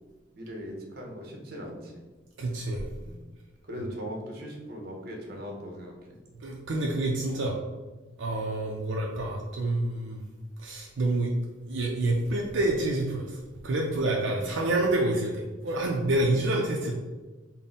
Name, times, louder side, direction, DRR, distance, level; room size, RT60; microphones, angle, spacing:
voice 1, 0.3-2.0 3.0-3.2 3.7-6.1 7.3-7.4 14.3-14.8, equal, 55° right, 0 dB, 0.8 m, -40 dB
voice 2, 2.4-2.8 3.8-3.9 6.4-7.6 8.2-10.2 10.6-11.3 11.7-17.0, right 2 dB, 80° right, -1 dB, 0.5 m, -28 dB
3.7 x 2.1 x 4.0 m, 1.2 s
head